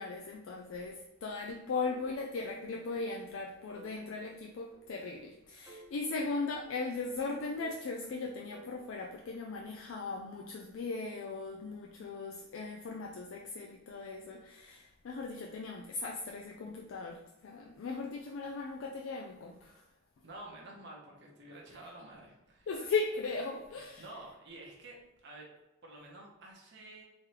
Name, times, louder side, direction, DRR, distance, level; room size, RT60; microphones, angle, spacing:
voice 1, 0.0-19.8 22.7-24.0, left 4 dB, 60° left, 2 dB, 0.3 m, -38 dB
sound 1, 1.9-3.0 3.3-3.4 3.8-5.3 5.7-7.1 7.6-9.4, right 2 dB, 5° right, 0.8 m, -57 dB
voice 2, 20.2-22.7 23.7-25.5 25.8-27.0, right 1 dB, 50° right, -2 dB, 0.8 m, -50 dB
3.6 x 3.2 x 2.9 m, 1.0 s
head